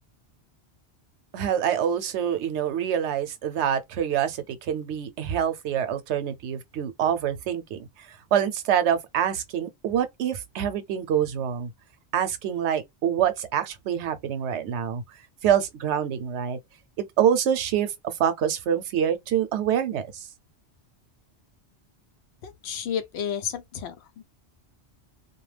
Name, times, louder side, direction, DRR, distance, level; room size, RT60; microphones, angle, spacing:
voice 1, 1.3-7.8 8.3-11.7 12.1-15.0 15.4-16.6 17.0-20.3, right 9 dB, 90° right, 0.9 m, -26 dB
voice 2, 22.4-24.2, left 8 dB, 75° left, 0.8 m, -32 dB
2.3 x 2.1 x 3.2 m
omnidirectional pair, 1.1 m